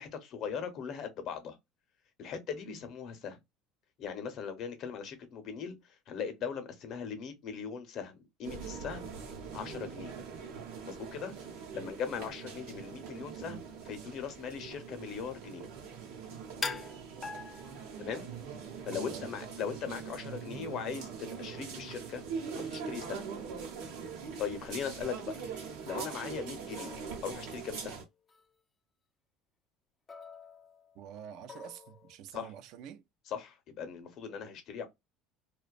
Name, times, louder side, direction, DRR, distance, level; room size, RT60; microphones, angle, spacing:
voice 1, 0.0-1.6 2.2-3.4 4.0-9.1 9.5-10.1 10.8-11.3 11.7-15.7 18.0-18.3 18.8-22.2 22.5-23.3 24.4-25.4 25.8-27.0 27.2-28.0 32.3-32.5 33.3-34.9, left 7 dB, 55° left, 0.7 m, -39 dB
sound 1, 8.4-28.0, right 6 dB, 85° right, 0.8 m, -42 dB
sound 2, 16.6-18.2 18.9-19.3 23.3-23.4 23.9-24.2 25.5-26.5 26.8-27.8 28.3-28.5 30.1-31.1 31.5-32.2, left 5 dB, 25° left, 0.3 m, -44 dB
voice 2, 18.9-19.3 20.5-20.7 30.9-33.0, right 9 dB, 65° right, 0.3 m, -47 dB
2.5 x 2.2 x 2.2 m
supercardioid pair, 120°, 0 cm